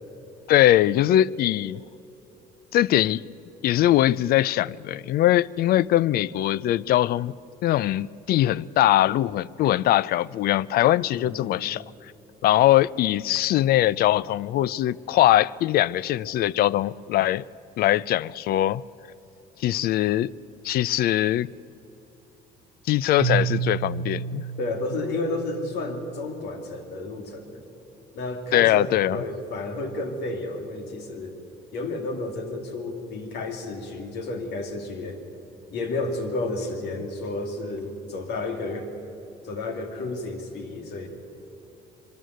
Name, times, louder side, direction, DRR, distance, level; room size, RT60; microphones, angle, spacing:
voice 1, 0.5-1.8 2.7-3.2 3.6-7.3 7.6-11.8 12.4-17.4 17.8-18.8 19.6-20.3 20.6-21.5 22.9-24.4 28.5-29.2, left 13 dB, 65° left, 0.4 m, -21 dB
voice 2, 11.1-11.6 24.6-27.6 28.1-31.3 31.7-35.2 35.7-38.9 39.4-41.1, left 2 dB, 80° left, 2.4 m, -31 dB
Keyboard (musical), 23.2-26.1, right 7 dB, 90° right, 1.0 m, -30 dB
23.5 x 13.0 x 9.3 m
cardioid pair, 110°, 17 cm